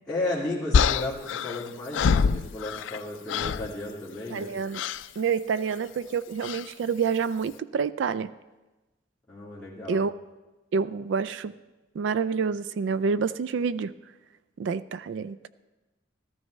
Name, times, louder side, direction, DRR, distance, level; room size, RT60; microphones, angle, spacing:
voice 1, 0.1-4.5 9.3-10.0, left 2 dB, 5° left, -12 dB, 2.1 m, -34 dB
sound 1, 0.7-3.0 3.3-3.7 4.7-5.1 6.4-6.7, left 6 dB, 85° left, 0.4 m, -25 dB
voice 2, 4.3-4.8 5.2-8.3 9.9-10.1 10.7-11.5 12.0-13.9 14.6-15.5, right 5 dB, 70° right, 16 dB, 0.3 m, -28 dB
14.0 x 14.0 x 3.2 m, 1.1 s
head